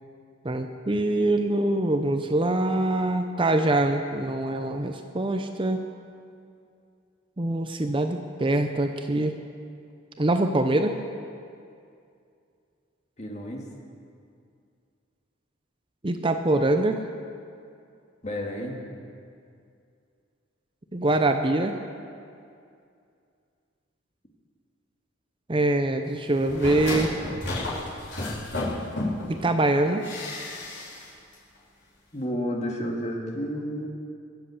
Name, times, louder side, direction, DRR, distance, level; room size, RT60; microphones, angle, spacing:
voice 1, 0.4-5.8 7.4-9.4 10.2-11.0 16.0-17.0 20.9-21.8 25.5-27.1 29.3-30.0, right 2 dB, 25° right, 6 dB, 0.7 m, -24 dB
voice 2, 13.2-13.6 18.2-18.8 32.1-33.9, equal, 35° left, 0 dB, 2.0 m, -31 dB
sound 1, 26.3-29.4 30.0-31.1 31.3-31.4, left 2 dB, 60° left, 4.2 m, -32 dB
23.0 x 7.8 x 7.1 m, 2.4 s
head